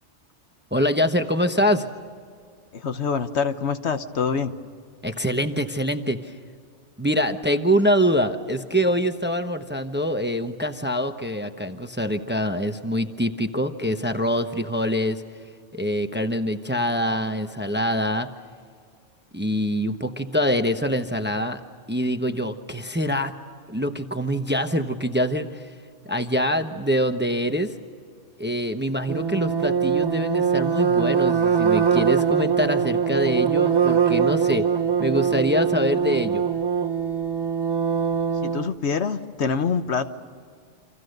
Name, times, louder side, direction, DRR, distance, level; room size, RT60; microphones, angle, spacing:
voice 1, 0.7-1.9 5.0-6.3 7.0-15.2 15.7-18.3 19.3-21.6 21.9-23.3 23.7-25.7 26.0-27.7 28.4-34.7 35.0-36.4, equal, 10° right, 7 dB, 0.9 m, -24 dB
voice 2, 2.7-4.5 38.4-40.1, left 5 dB, 65° left, 10 dB, 1.3 m, -25 dB
sound 1, 29.1-38.7, right 7 dB, 30° right, 0.5 m, -22 dB
29.0 x 26.0 x 6.7 m, 2.1 s
omnidirectional pair, 1.2 m